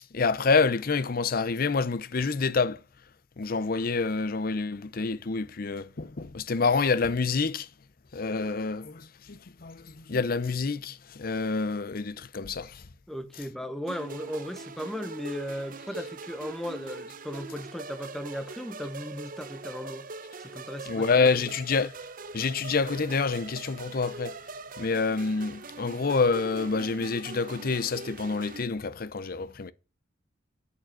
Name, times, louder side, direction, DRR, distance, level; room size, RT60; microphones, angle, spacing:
voice 1, 0.1-2.8 3.4-7.7 8.1-12.8 20.9-21.9 22.3-24.3 24.8-29.7, left 4 dB, 50° left, 0.6 m, -27 dB
voice 2, 13.1-20.1 20.4-21.0, equal, ahead, 0.8 m, -36 dB
sound 1, 13.9-28.6, right 3 dB, 45° right, 0.8 m, -42 dB
8.7 x 6.6 x 7.6 m
head